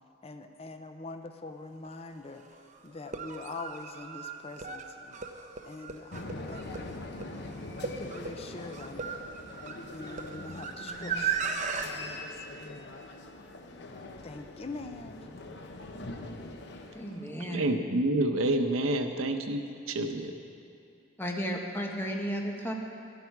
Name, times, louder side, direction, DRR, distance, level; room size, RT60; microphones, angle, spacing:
voice 1, 0.2-2.4 2.8-5.2 5.7-7.0 7.8-9.2 9.9-11.4 11.8-13.0 14.2-15.3, left 3 dB, 30° left, 7 dB, 0.5 m, -44 dB
sound 1, 1.8-1.9 3.0-11.9, right 6 dB, 40° right, 0.7 m, -36 dB
sound 2, 6.1-17.4, left 2 dB, 55° left, 0.9 m, -43 dB
voice 2, 10.8-11.2 16.9-17.6 21.2-22.7, equal, 10° left, 0 dB, 1.2 m, -34 dB
voice 3, 17.5-20.3, right 1 dB, 85° right, 6 dB, 0.8 m, -28 dB
12.0 x 12.0 x 4.7 m, 2.7 s
head